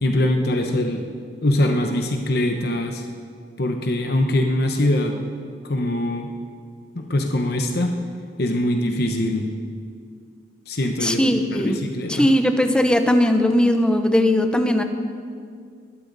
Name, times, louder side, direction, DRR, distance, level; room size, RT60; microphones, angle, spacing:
voice 1, 0.0-1.1 1.4-3.0 3.6-5.2 5.6-6.3 6.9-8.0 8.4-9.5 10.7-12.3, left 1 dB, 55° left, 3 dB, 1.0 m, -22 dB
voice 2, 11.0-11.8 12.1-14.8, left 1 dB, 5° left, 6 dB, 0.8 m, -19 dB
21.0 x 13.0 x 4.1 m, 2.2 s
head